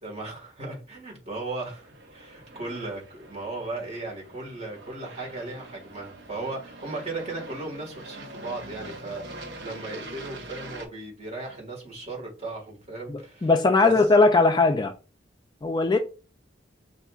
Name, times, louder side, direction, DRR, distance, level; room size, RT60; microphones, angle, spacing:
voice 1, 0.0-13.5 13.8-13.9, right 2 dB, 35° right, 1.6 m, -36 dB
Aircraft, 1.6-10.9, right 2 dB, 75° right, 0.9 m, -44 dB
voice 2, 13.1-14.9 15.6-16.0, left 3 dB, 25° left, 0.3 m, -20 dB
6.6 x 2.6 x 2.3 m
head